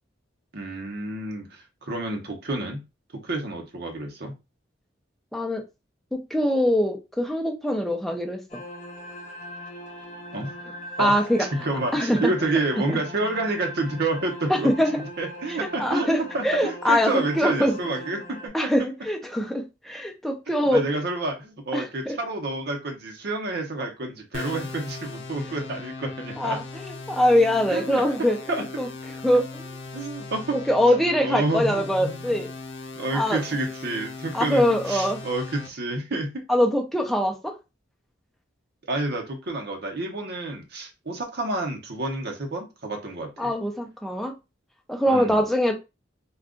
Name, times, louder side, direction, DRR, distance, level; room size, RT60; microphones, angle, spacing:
voice 1, 0.5-2.8 3.1-4.3 10.3-10.5 11.0-11.2 11.5-14.7 15.2-16.1 16.3-18.5 20.5-26.6 27.7-28.0 28.5-28.6 29.9-30.6 31.2-32.4 33.0-36.3 38.9-43.5 45.1-45.4, right 2 dB, 60° right, 0.9 m, -29 dB
voice 2, 5.3-5.6 6.1-8.6 11.0-11.5 11.9-12.3 14.5-14.9 15.5-18.0 18.5-20.8 21.7-22.2 26.4-28.9 29.2-29.7 30.5-32.5 33.1-33.4 34.3-35.2 36.5-37.6 43.4-44.3 44.9-45.7, equal, ahead, 0.5 m, -23 dB
sound 1, 8.5-18.5, equal, 40° left, 0.8 m, -40 dB
sound 2, 24.3-35.7, left 3 dB, 90° left, 0.6 m, -39 dB
2.4 x 2.3 x 3.6 m
head